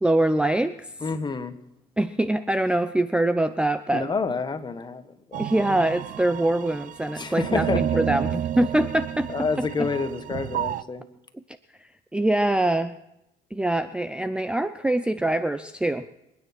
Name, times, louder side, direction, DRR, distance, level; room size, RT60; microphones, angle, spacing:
voice 1, 0.0-0.9 2.0-4.1 5.4-9.3 9.6-9.9 12.1-12.9 13.5-16.0, right 1 dB, 5° right, 12 dB, 0.6 m, -24 dB
voice 2, 1.0-1.6 3.9-5.0 5.3-5.4 7.1-7.8 9.3-11.0, left 4 dB, 25° left, 9 dB, 1.5 m, -28 dB
sound 1, 5.3-10.8, right 11 dB, 55° right, 0.6 m, -31 dB
24.5 x 9.8 x 6.1 m, 0.85 s
cardioid pair, 110°, 17 cm